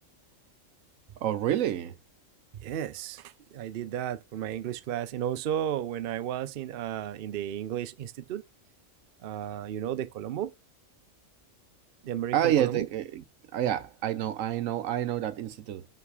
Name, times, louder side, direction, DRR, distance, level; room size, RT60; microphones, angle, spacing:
voice 1, 1.2-2.0 12.3-13.2 13.5-15.9, right 11 dB, 85° right, 1.1 m, -28 dB
voice 2, 2.5-8.4 9.2-10.5 12.0-12.9, right 10 dB, 55° right, 0.7 m, -33 dB
5.6 x 5.5 x 4.8 m
omnidirectional pair, 1.3 m